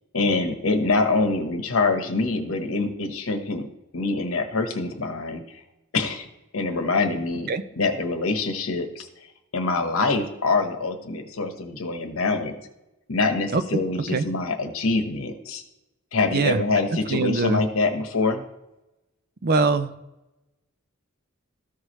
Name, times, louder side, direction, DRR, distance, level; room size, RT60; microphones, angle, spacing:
voice 1, 0.1-3.7 3.9-5.4 5.9-6.3 6.5-7.5 7.8-9.1 9.5-12.5 13.1-15.6 16.1-18.4, left 3 dB, 75° left, 5 dB, 1.1 m, -25 dB
voice 2, 16.9-17.6 19.4-19.9, right 3 dB, 45° right, 11 dB, 0.5 m, -23 dB
14.0 x 4.8 x 3.2 m, 0.94 s
head